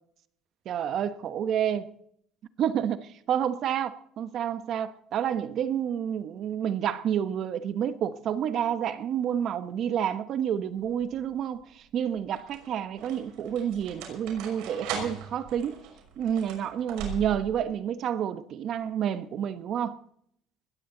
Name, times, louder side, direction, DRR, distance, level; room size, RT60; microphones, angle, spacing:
voice 1, 0.6-1.9 2.6-15.8 16.2-20.0, right 9 dB, 45° right, 1.2 m, -29 dB
sound 1, 10.8-11.3 12.1-17.6, right 6 dB, 80° right, 5.8 m, -40 dB
20.5 x 15.5 x 4.0 m
cardioid pair, 155°, 0 cm